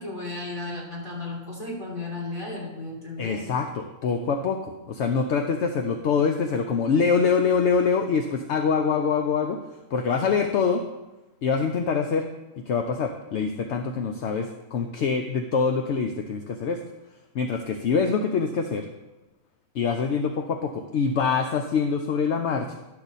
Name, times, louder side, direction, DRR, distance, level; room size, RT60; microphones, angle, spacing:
voice 1, 0.0-3.5, left 2 dB, 20° left, -5 dB, 3.1 m, -34 dB
voice 2, 3.2-9.6 9.9-10.8 11.4-12.3 12.7-16.8 17.3-18.9 19.7-22.8, left 5 dB, 60° left, 5 dB, 0.8 m, -25 dB
11.5 x 6.7 x 4.1 m, 1.1 s
omnidirectional pair, 1.6 m